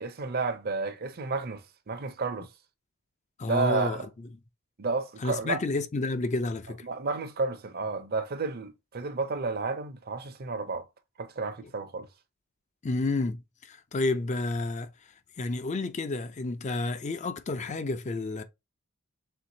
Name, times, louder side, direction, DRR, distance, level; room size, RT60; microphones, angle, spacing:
voice 1, 0.0-2.5 3.4-4.1 4.8-5.6 6.8-10.9 11.2-12.1, right 3 dB, 45° right, 0.6 m, -31 dB
voice 2, 3.4-4.0 5.2-6.9 12.8-14.9 15.4-18.4, left 2 dB, 30° left, 0.4 m, -30 dB
4.5 x 3.5 x 2.7 m
head